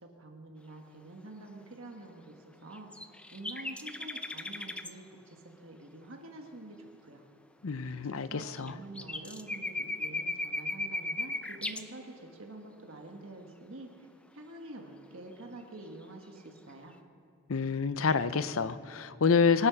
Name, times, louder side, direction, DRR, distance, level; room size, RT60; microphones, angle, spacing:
voice 1, 0.0-2.9 3.3-7.2 8.0-14.1 14.3-17.0, right 2 dB, 60° right, 2 dB, 1.4 m, -47 dB
sound 1, 2.7-4.9 8.6-8.7 8.9-11.8, left 2 dB, 5° left, 0.4 m, -36 dB
voice 2, 7.6-8.7 17.5-19.7, left 5 dB, 65° left, 14 dB, 0.6 m, -27 dB
25.0 x 8.8 x 5.8 m, 2.5 s
head